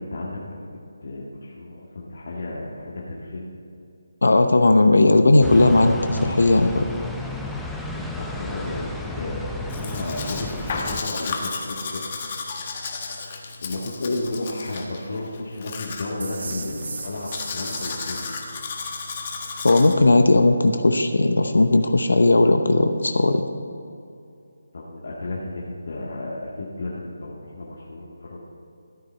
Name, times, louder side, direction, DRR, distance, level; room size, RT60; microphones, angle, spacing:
voice 1, 0.0-3.5 7.9-12.0 13.6-18.4 24.7-28.4, left 2 dB, 60° left, -5 dB, 1.8 m, -33 dB
voice 2, 4.2-6.9 19.6-23.4, left 2 dB, 80° left, 7 dB, 0.8 m, -17 dB
sound 1, 5.4-11.0, left 1 dB, ahead, 0.6 m, -33 dB
Domestic sounds home sounds, 9.7-19.9, left 4 dB, 35° left, 1.5 m, -34 dB
sound 2, 16.2-19.2, right 4 dB, 60° right, 1.2 m, -38 dB
14.0 x 9.1 x 4.4 m, 2.5 s
figure-of-eight pair, 160°, 0 cm